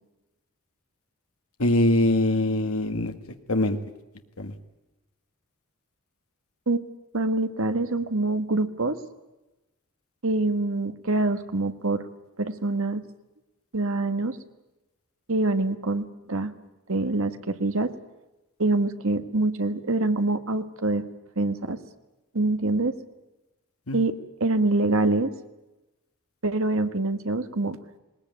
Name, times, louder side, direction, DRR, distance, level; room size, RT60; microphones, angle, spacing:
voice 1, 1.6-3.1 3.5-3.8 4.4-4.5 23.9-24.0, left 1 dB, 70° left, 6 dB, 1.6 m, -23 dB
voice 2, 7.1-9.0 10.2-12.0 12.4-13.0 13.7-14.4 15.3-16.5 16.9-17.9 18.6-21.0 21.4-21.8 22.3-22.9 23.9-24.1 24.4-25.3 26.4-27.8, right 2 dB, 65° right, 9 dB, 1.5 m, -25 dB
20.0 x 20.0 x 9.3 m, 1.0 s
head